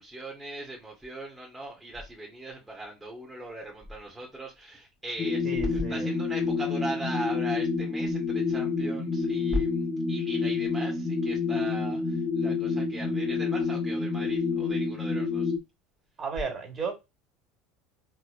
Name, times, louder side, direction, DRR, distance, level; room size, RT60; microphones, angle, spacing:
voice 1, 0.0-15.5, right 1 dB, 15° right, 1.4 m, -38 dB
sound 1, 5.2-15.6, left 4 dB, 35° left, 1.1 m, -28 dB
voice 2, 5.4-6.1 16.2-16.9, right 5 dB, 35° right, 2.0 m, -34 dB
3.9 x 3.2 x 2.6 m
figure-of-eight pair, 70°, 0 cm